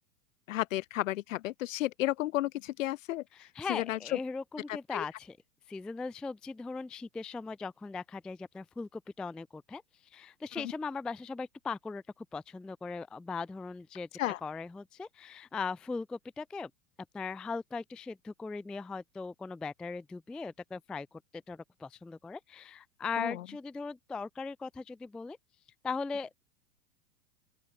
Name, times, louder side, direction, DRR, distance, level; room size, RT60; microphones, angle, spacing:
voice 1, 0.5-3.2 3.7-4.0 4.9-5.0 10.6-10.7 14.2-14.4 23.2-23.4, left 15 dB, 60° left, 1.4 m, -32 dB
voice 2, 3.3-5.4 5.7-9.8 10.1-14.1 14.4-16.7 17.1-25.4 25.8-26.4, left 4 dB, ahead, 0.3 m, -39 dB
open air
hypercardioid pair, 100°, 45 cm